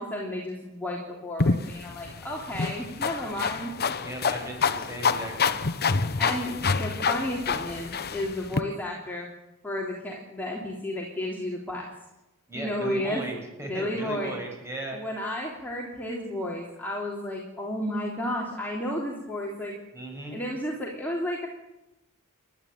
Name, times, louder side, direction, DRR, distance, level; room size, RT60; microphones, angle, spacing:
voice 1, 0.0-3.7 6.2-9.3 9.6-11.9 12.5-13.2 13.6-14.3 14.9-19.8 20.3-21.5, left 1 dB, 10° left, -3 dB, 3.4 m, -32 dB
sound 1, 1.4-8.6, left 5 dB, 45° left, 1.0 m, -27 dB
voice 2, 4.0-5.6 12.5-15.0 19.9-20.4, right 1 dB, 15° right, 1 dB, 6.8 m, -37 dB
30.0 x 12.5 x 9.2 m, 0.97 s
head